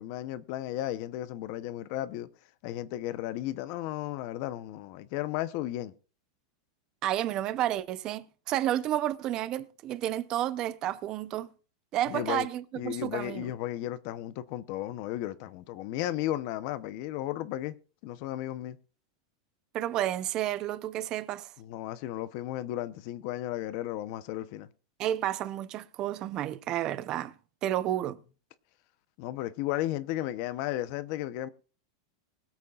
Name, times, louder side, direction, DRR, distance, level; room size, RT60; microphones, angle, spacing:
voice 1, 0.0-2.3 2.6-5.9 12.1-12.5 12.7-17.8 18.0-18.8 21.6-24.7 29.2-31.5, left 14 dB, 40° left, 0.8 m, -34 dB
voice 2, 7.0-11.5 11.9-13.5 19.7-21.5 25.0-27.3 27.6-28.2, right 12 dB, 25° right, 0.6 m, -31 dB
23.5 x 8.3 x 2.4 m
supercardioid pair, 175°, 2 cm